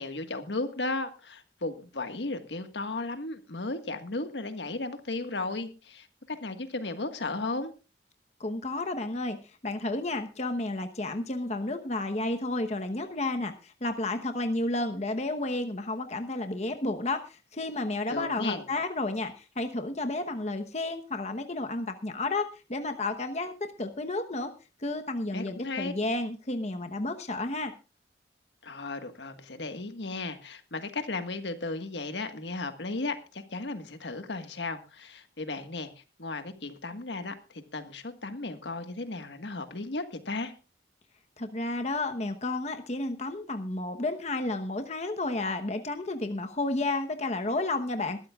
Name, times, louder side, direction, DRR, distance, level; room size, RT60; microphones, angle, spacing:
voice 1, 0.0-7.7 18.1-18.6 25.3-25.9 28.6-40.5, left 3 dB, 80° left, 8 dB, 1.6 m, -35 dB
voice 2, 8.4-9.4 9.6-24.5 24.8-27.7 41.4-48.2, left 2 dB, 40° left, 7 dB, 1.0 m, -31 dB
21.5 x 13.0 x 2.4 m, 0.32 s
head